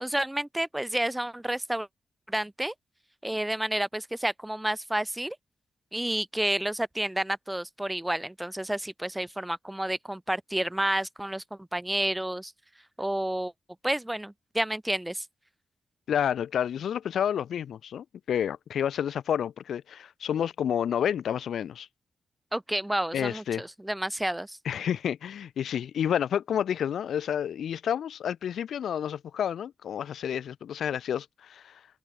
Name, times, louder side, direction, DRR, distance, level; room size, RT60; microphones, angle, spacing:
voice 1, 0.0-1.9 2.3-2.7 3.2-5.4 5.9-12.5 13.0-13.5 13.8-15.2 22.5-24.6, right 1 dB, 10° right, 0.8 m, -30 dB
voice 2, 16.1-21.9 23.1-23.7 24.6-31.8, left 9 dB, 80° left, 0.5 m, -30 dB
cardioid pair, 60°, 0 cm